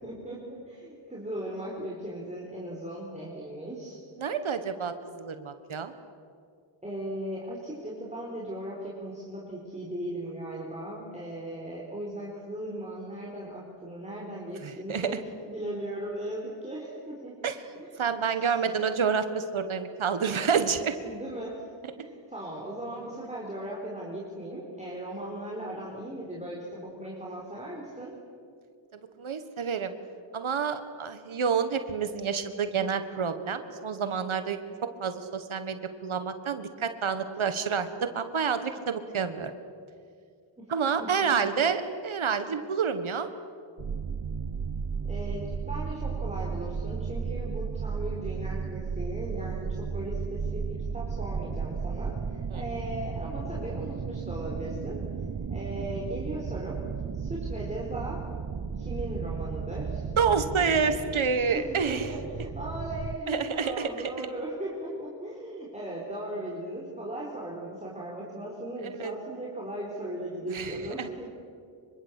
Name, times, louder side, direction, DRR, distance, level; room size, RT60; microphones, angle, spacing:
voice 1, 0.0-4.0 6.8-15.2 15.4-17.4 17.7-18.1 18.4-18.6 21.0-21.6 22.0-28.2 40.6-40.7 41.0-41.1 41.4-41.5 45.0-55.0 55.5-56.8 57.1-58.2 58.8-60.1 61.5-71.3, right 1 dB, 15° right, -4 dB, 4.5 m, -38 dB
voice 2, 4.2-5.9 14.6-15.1 17.4-17.6 18.0-20.9 29.2-29.9 30.3-34.6 35.0-39.5 40.7-43.3 52.5-52.6 60.2-62.1 63.3-64.3 69.0-69.1 70.5-71.1, right 6 dB, 90° right, 9 dB, 1.6 m, -28 dB
sound 1, 43.8-63.2, right 6 dB, 45° right, 0.9 m, -34 dB
25.5 x 24.5 x 8.4 m, 2.3 s
wide cardioid pair, 110°, 47 cm